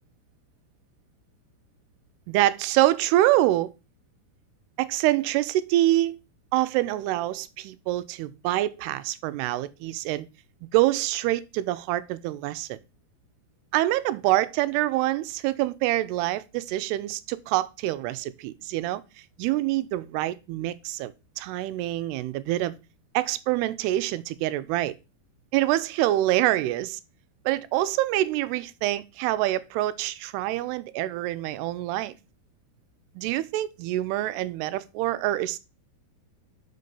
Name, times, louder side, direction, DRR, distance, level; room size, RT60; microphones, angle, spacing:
voice 1, 2.3-3.7 4.8-6.2 6.5-10.3 10.7-12.8 13.7-19.0 19.4-22.8 23.1-24.9 25.5-27.0 27.5-32.1 33.2-35.6, right 15 dB, 90° right, 2.7 m, -26 dB
6.4 x 5.3 x 6.7 m
omnidirectional pair, 4.6 m